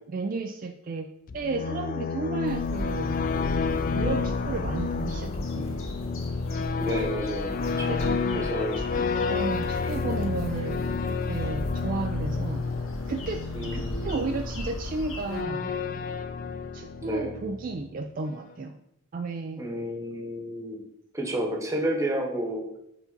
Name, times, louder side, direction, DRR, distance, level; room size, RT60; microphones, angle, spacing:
voice 1, 0.1-1.1 1.3-3.2 3.9-5.8 7.9-8.5 8.8-8.9 9.3-12.6 13.1-13.4 13.7-15.7 16.7-18.8 19.1-19.6, right 3 dB, 45° right, 4 dB, 0.4 m, -33 dB
sound 1, 1.3-17.9, left 4 dB, 40° left, 0.4 m, -30 dB
sound 2, 2.4-15.4, left 1 dB, 80° left, 1.1 m, -37 dB
voice 2, 6.8-8.0 8.3-8.8 13.5-14.4 17.0-17.3 19.6-20.8 21.1-22.6, right 1 dB, 15° right, 0 dB, 1.0 m, -31 dB
4.9 x 3.8 x 5.3 m, 0.81 s
head